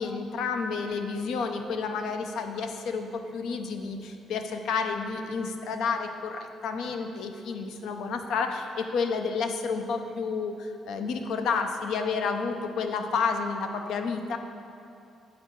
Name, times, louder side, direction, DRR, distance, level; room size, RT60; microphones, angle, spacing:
voice 1, 0.0-14.4, left 5 dB, 80° left, 6 dB, 0.5 m, -30 dB
8.5 x 4.6 x 4.5 m, 2.6 s
cardioid pair, 90°, 0 cm